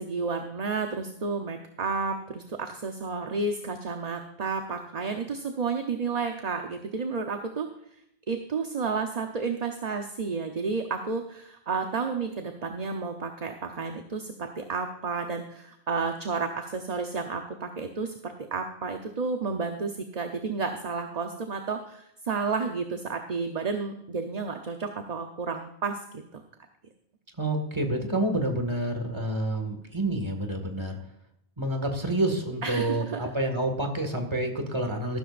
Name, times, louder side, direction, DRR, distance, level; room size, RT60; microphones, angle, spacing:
voice 1, 0.0-7.7 8.3-26.4 32.6-33.2, right 4 dB, 40° right, 5 dB, 0.9 m, -31 dB
voice 2, 27.4-31.0 31.6-35.2, right 1 dB, 25° right, 5 dB, 2.0 m, -28 dB
14.0 x 12.5 x 2.6 m, 0.78 s
omnidirectional pair, 1.0 m